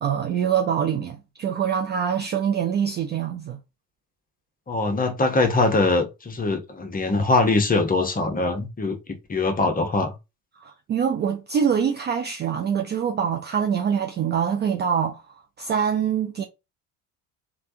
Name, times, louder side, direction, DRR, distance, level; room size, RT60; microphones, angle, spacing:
voice 1, 0.0-3.6 10.6-15.2 15.6-16.4, right 8 dB, 25° right, 0.4 m, -24 dB
voice 2, 4.7-10.1, left 3 dB, 20° left, 0.8 m, -22 dB
3.3 x 2.3 x 2.6 m
figure-of-eight pair, 60°, 46 cm